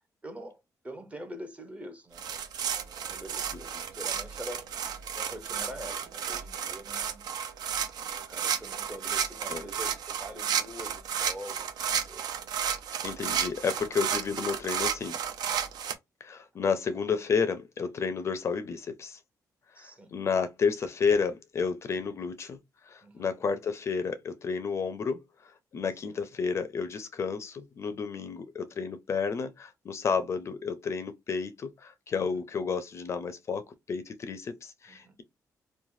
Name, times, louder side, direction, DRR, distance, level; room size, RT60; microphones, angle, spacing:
voice 1, 0.2-2.3 2.8-4.7 5.1-7.3 8.3-11.7 12.0-12.2 17.1-17.2 19.7-20.1 23.0-23.3 26.0-26.2 32.1-32.4 34.9-35.2, right 1 dB, 20° right, 0.7 m, -44 dB
sound 1, 2.2-15.9, right 8 dB, 75° right, 0.4 m, -32 dB
voice 2, 13.0-15.2 16.2-19.2 19.7-22.6 22.8-33.6 33.9-35.2, left 5 dB, 40° left, 0.4 m, -31 dB
3.1 x 2.1 x 2.5 m
cardioid pair, 140°, 7 cm